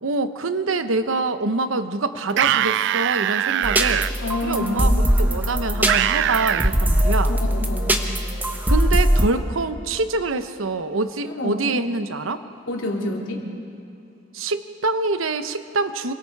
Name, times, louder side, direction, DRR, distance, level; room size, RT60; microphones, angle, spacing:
voice 1, 0.0-4.1 4.4-7.3 8.7-12.4 14.3-16.1, right 3 dB, 85° right, 10 dB, 1.0 m, -25 dB
sound 1, 2.3-4.1 5.9-6.7, right 11 dB, 65° right, 0.4 m, -22 dB
sound 2, 3.6-9.3, equal, 10° right, 1.4 m, -21 dB
voice 2, 4.2-4.9 7.3-8.0 11.2-11.6 12.7-13.4, left 2 dB, 70° left, -1 dB, 3.3 m, -28 dB
27.5 x 24.0 x 4.7 m, 2.7 s
head